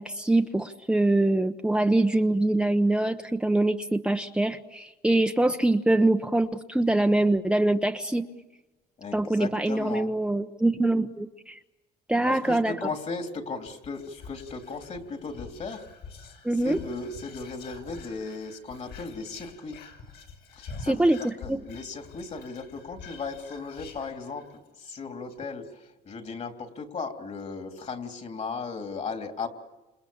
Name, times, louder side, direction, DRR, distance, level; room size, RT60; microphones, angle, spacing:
voice 1, 0.0-8.3 9.1-11.6 12.1-12.7 16.4-16.8 20.8-21.6, right 2 dB, 5° right, 5 dB, 0.9 m, -24 dB
voice 2, 9.0-10.1 12.2-15.8 16.6-19.8 20.5-29.5, left 4 dB, 40° left, 5 dB, 3.5 m, -36 dB
Whispering, 13.6-24.7 25.0-25.1 25.3-25.7, left 4 dB, 70° left, 6.7 m, -46 dB
30.0 x 28.0 x 7.2 m, 1.1 s
cardioid pair, 110°, 17 cm